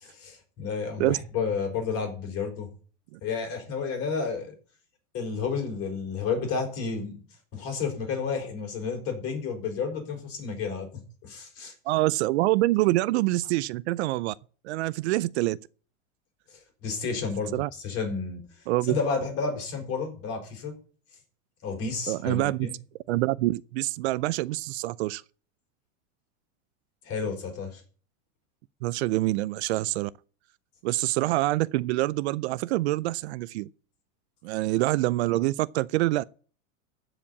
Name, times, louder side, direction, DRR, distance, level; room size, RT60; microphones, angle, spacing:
voice 1, 0.2-2.7 3.2-4.6 5.1-7.2 7.5-10.9 11.2-11.7 16.8-18.4 18.9-20.7 21.6-22.7 27.0-27.8, left 5 dB, 35° left, 5.2 m, -31 dB
voice 2, 11.9-14.3 14.6-15.6 17.5-17.7 18.7-19.0 22.1-22.7 23.1-25.2 28.8-30.1 30.8-33.7 34.4-36.2, right 18 dB, 60° right, 0.5 m, -26 dB
14.5 x 5.0 x 8.4 m
supercardioid pair, 145°, 38 cm